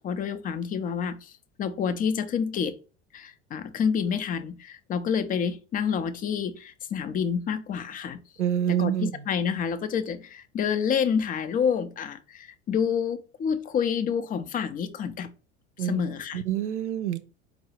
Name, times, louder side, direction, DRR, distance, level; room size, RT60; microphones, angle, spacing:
voice 1, 0.0-1.3 1.6-2.8 3.1-8.2 8.7-15.3 15.8-16.4, left 7 dB, 25° left, 0.5 m, -28 dB
voice 2, 8.4-9.1 15.8-16.0 16.3-17.2, right 9 dB, 85° right, 0.5 m, -26 dB
4.5 x 2.0 x 4.3 m
figure-of-eight pair, 75°, 34 cm